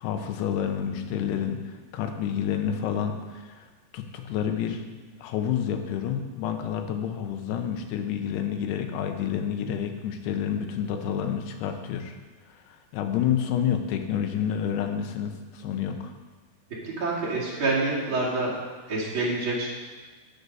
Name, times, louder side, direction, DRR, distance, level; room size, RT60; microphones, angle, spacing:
voice 1, 0.0-3.7 3.9-4.8 5.2-12.1 12.5-16.1, left 8 dB, 85° left, 6 dB, 2.9 m, -29 dB
voice 2, 16.8-18.5 18.9-19.7, right 2 dB, 35° right, -7 dB, 2.7 m, -27 dB
13.5 x 6.7 x 5.4 m, 1.4 s
omnidirectional pair, 4.6 m